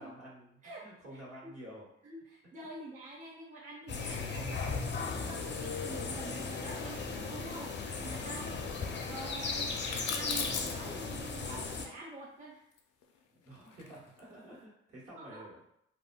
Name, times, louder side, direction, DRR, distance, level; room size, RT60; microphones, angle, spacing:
voice 1, 0.0-1.9 8.5-8.7 13.3-15.6, equal, 55° right, -4 dB, 1.3 m, -50 dB
voice 2, 1.1-1.5 2.0-9.8 10.1-12.7 15.2-15.4, right 2 dB, 25° right, -4 dB, 0.6 m, -47 dB
sound 1, 3.9-11.9, left 4 dB, 35° left, 0.5 m, -37 dB
sound 2, 9.7-10.9 12.7-14.3, left 6 dB, 85° left, 0.5 m, -39 dB
3.6 x 2.2 x 2.2 m, 0.76 s
cardioid pair, 90°, 30 cm